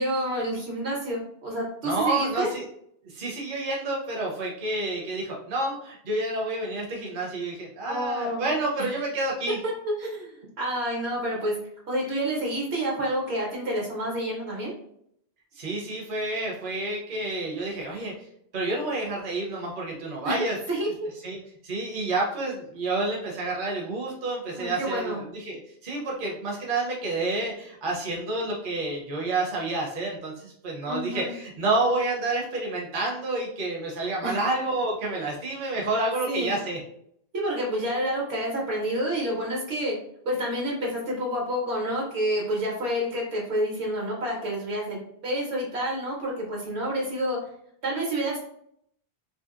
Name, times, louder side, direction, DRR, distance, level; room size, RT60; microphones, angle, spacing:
voice 1, 0.0-2.5 7.8-8.5 9.6-9.7 10.0-10.3 10.6-11.5 11.9-14.7 20.2-20.9 24.5-25.2 30.9-31.3 34.2-34.4 36.3-36.6 37.3-40.0 40.2-47.4 47.8-48.4, equal, 80° right, -2 dB, 1.3 m, -29 dB
voice 2, 1.8-2.7 3.0-9.6 15.5-18.3 18.5-20.6 21.2-36.8, right 2 dB, 55° right, -2 dB, 0.8 m, -29 dB
2.9 x 2.7 x 2.4 m, 0.70 s
omnidirectional pair, 1.1 m